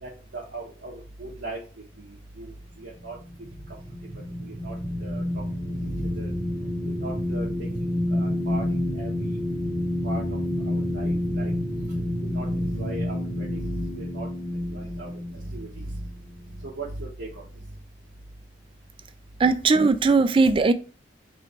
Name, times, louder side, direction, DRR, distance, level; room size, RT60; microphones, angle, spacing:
voice 1, 0.0-1.6 2.4-2.5 2.8-3.1 4.4-4.7 5.0-5.4 6.0-6.3 7.0-7.7 8.1-8.6 9.0-9.4 10.0-10.4 10.7-11.5 12.3-12.5 12.7-14.3 14.7-15.9 16.6-17.4, right 2 dB, 75° right, 1.0 m, -37 dB
sound 1, 3.0-16.6, left 1 dB, 5° right, 0.8 m, -29 dB
voice 2, 19.4-20.7, right 4 dB, 30° right, 0.3 m, -19 dB
3.2 x 3.1 x 4.2 m
head